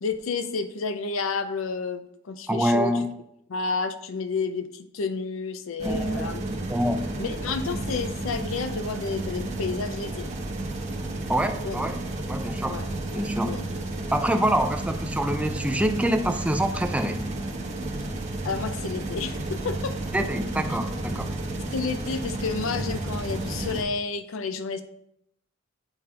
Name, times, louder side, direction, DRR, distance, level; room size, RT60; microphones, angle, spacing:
voice 1, 0.0-2.9 3.5-6.4 7.2-10.3 11.6-11.8 12.6-12.9 13.4-13.7 18.4-20.0 21.7-24.8, left 4 dB, 75° left, 10 dB, 0.6 m, -30 dB
voice 2, 2.5-3.1 5.8-7.0 11.3-12.0 12.3-12.8 13.1-13.6 14.1-17.2 20.1-21.3, right 1 dB, 5° right, 6 dB, 0.5 m, -26 dB
sound 1, 5.8-23.8, right 2 dB, 35° right, 1.0 m, -32 dB
8.9 x 4.2 x 3.7 m, 0.77 s
head